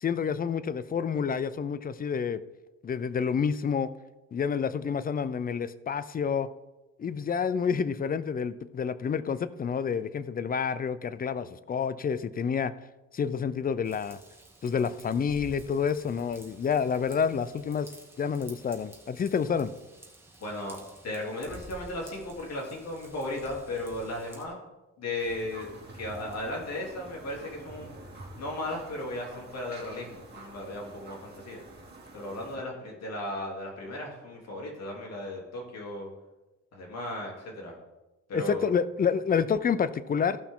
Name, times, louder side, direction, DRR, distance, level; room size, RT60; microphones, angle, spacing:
voice 1, 0.0-2.4 2.8-3.9 4.3-6.5 7.0-12.7 13.1-14.2 14.6-17.9 18.2-19.7 38.3-40.4, left 6 dB, 30° left, 15 dB, 0.5 m, -28 dB
Raindrop / Vehicle horn car horn honking / Trickle dribble, 13.8-24.4, right 1 dB, 10° right, 2.2 m, -51 dB
voice 2, 20.4-20.8 21.0-24.6 25.0-25.7 25.9-27.9 28.4-31.6 32.1-36.1 36.7-37.7 38.3-38.7, left 1 dB, 60° left, -1 dB, 3.0 m, -36 dB
sound 1, 25.2-32.6, right 2 dB, 35° right, 2.5 m, -48 dB
15.0 x 5.8 x 3.7 m, 1.1 s
cardioid pair, 90°, 30 cm